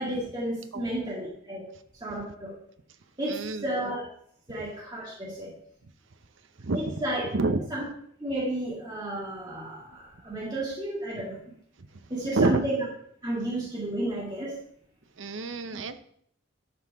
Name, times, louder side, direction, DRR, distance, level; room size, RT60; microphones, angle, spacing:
voice 1, 0.0-1.6 2.0-2.5 3.2-4.0 4.5-5.5 6.7-7.2 7.7-7.8 8.2-11.4 12.1-12.7 13.2-14.5, right 1 dB, 20° right, -7 dB, 2.3 m, -32 dB
voice 2, 3.3-3.7 6.6-7.0 7.3-7.7 11.8-11.9 12.3-12.7 15.2-16.0, right 2 dB, 65° right, 9 dB, 0.7 m, -28 dB
12.0 x 5.9 x 3.5 m, 0.68 s
head